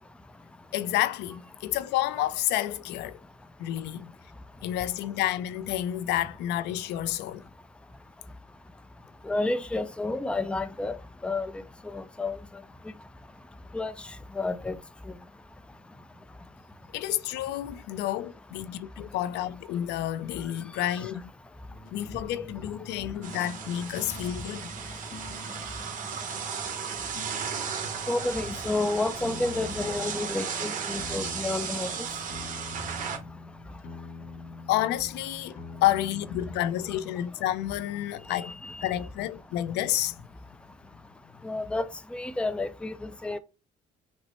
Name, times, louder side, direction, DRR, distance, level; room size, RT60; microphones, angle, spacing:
voice 1, 0.7-3.2 3.6-4.1 4.6-7.4 16.9-21.3 21.9-24.7 34.7-38.5 38.8-40.1, left 13 dB, 85° left, 0.4 m, -30 dB
voice 2, 9.2-11.0 11.2-12.4 13.7-14.8 15.1-15.2 20.8-21.0 28.1-32.1 38.3-38.9 41.4-43.4, left 2 dB, 5° left, 0.4 m, -31 dB
sound 1, 21.7-28.4 29.2-37.2, left 3 dB, 55° left, 0.8 m, -45 dB
sound 2, 23.2-33.2, right 6 dB, 50° right, 1.1 m, -35 dB
6.1 x 2.1 x 4.1 m
cardioid pair, 110°, 17 cm